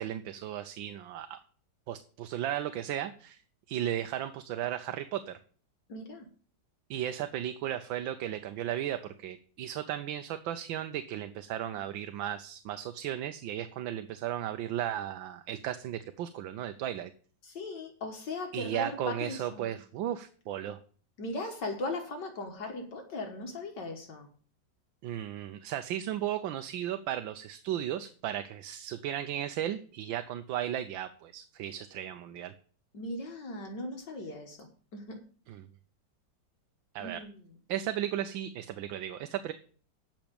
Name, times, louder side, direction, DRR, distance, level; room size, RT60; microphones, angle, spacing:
voice 1, 0.0-1.4 1.9-3.4 3.7-5.4 6.9-17.1 18.5-20.8 25.0-32.5 35.5-35.7 36.9-37.2 37.7-39.5, right 11 dB, 90° right, 1.5 m, -35 dB
voice 2, 5.9-6.3 17.4-19.7 21.2-24.3 32.9-34.6 34.9-35.2 37.0-37.3, left 2 dB, 65° left, 2.0 m, -38 dB
9.0 x 6.4 x 8.6 m
omnidirectional pair, 2.0 m